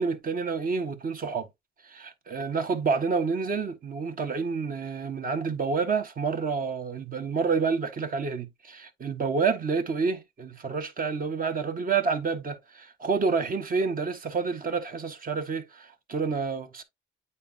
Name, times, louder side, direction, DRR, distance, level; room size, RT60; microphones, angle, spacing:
voice 1, 0.0-1.5 1.9-16.8, right 5 dB, 45° right, 1.4 m, -29 dB
8.6 x 4.2 x 2.7 m
cardioid pair, 90°, 20 cm